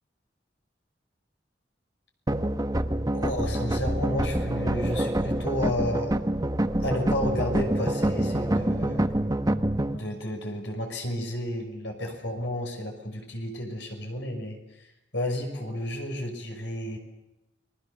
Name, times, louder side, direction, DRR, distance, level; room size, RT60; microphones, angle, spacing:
sound 1, 2.3-9.9, right 1 dB, 20° right, 1.1 m, -26 dB
voice 1, 3.1-6.2 6.8-9.1 9.9-17.0, left 1 dB, 75° left, 3 dB, 6.1 m, -32 dB
29.5 x 21.5 x 6.9 m, 0.97 s
head